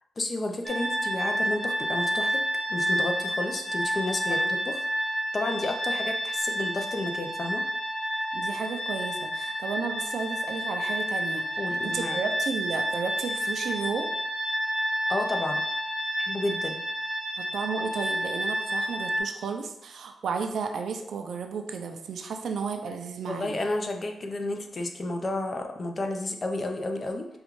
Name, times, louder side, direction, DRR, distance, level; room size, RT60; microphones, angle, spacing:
voice 1, 0.2-2.4 2.7-4.4 4.7-4.8 5.3-7.6 11.6-12.2 15.1-15.6 16.2-16.8 23.3-27.3, left 2 dB, 40° left, 4 dB, 0.6 m, -31 dB
sound 1, 0.7-19.2, equal, 5° right, 1.0 m, -30 dB
voice 2, 8.3-14.1 17.4-23.6, right 5 dB, 75° right, 4 dB, 0.5 m, -33 dB
5.2 x 2.4 x 3.1 m, 0.82 s
cardioid pair, 70°, 0 cm